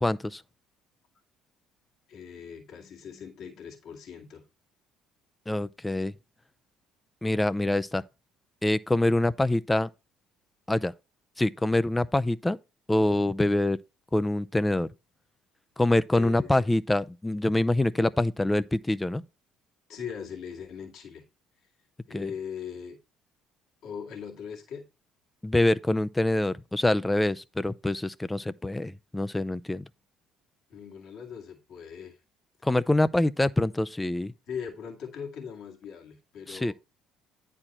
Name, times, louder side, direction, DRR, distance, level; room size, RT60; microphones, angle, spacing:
voice 1, 0.0-0.4 5.5-6.1 7.2-8.0 8.6-9.9 10.7-10.9 11.4-12.6 12.9-13.8 14.1-14.9 15.8-19.2 22.1-22.3 25.4-29.9 32.6-34.3 36.5-36.7, left 1 dB, 10° left, 0.5 m, -25 dB
voice 2, 2.1-4.4 16.1-16.7 19.9-21.2 22.1-23.0 23.8-24.9 30.7-32.2 34.5-36.7, left 7 dB, 60° left, 2.2 m, -40 dB
9.7 x 4.4 x 4.2 m
hypercardioid pair, 55°, 0 cm